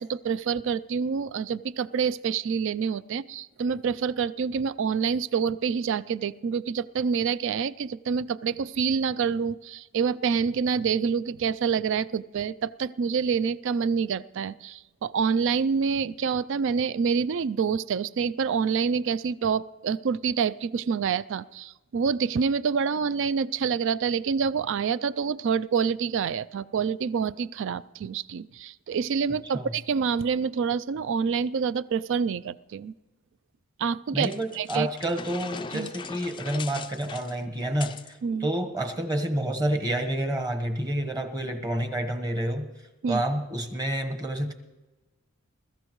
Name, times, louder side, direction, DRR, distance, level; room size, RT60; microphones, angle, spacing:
voice 1, 0.0-32.9 33.8-34.3 34.5-34.9 35.7-35.9 38.2-38.5 43.0-43.2, right 6 dB, 60° right, 18 dB, 0.4 m, -27 dB
voice 2, 34.1-42.7 43.1-44.5, right 1 dB, 20° right, 5 dB, 1.1 m, -29 dB
sound 1, 34.2-38.1, left 5 dB, 20° left, 0.4 m, -40 dB
22.0 x 14.0 x 3.1 m, 1.1 s
head